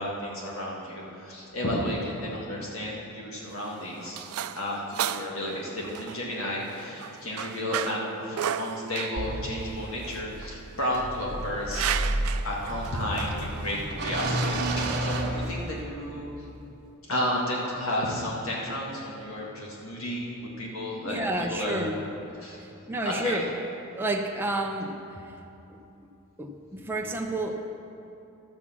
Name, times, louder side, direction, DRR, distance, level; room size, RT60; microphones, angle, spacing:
voice 1, 0.0-12.1 12.4-16.3 17.1-21.9 22.4-22.6 23.0-23.4, left 1 dB, 65° left, -3 dB, 1.7 m, -32 dB
sound 1, 3.4-15.7, right 9 dB, 80° right, 0.4 m, -36 dB
sound 2, 9.2-16.1, right 1 dB, 50° right, 1.2 m, -31 dB
voice 2, 21.0-22.0 22.9-23.5 24.0-25.0 26.4-27.5, right 1 dB, 10° right, 1 dB, 0.6 m, -30 dB
12.5 x 6.1 x 7.4 m, 2.8 s
head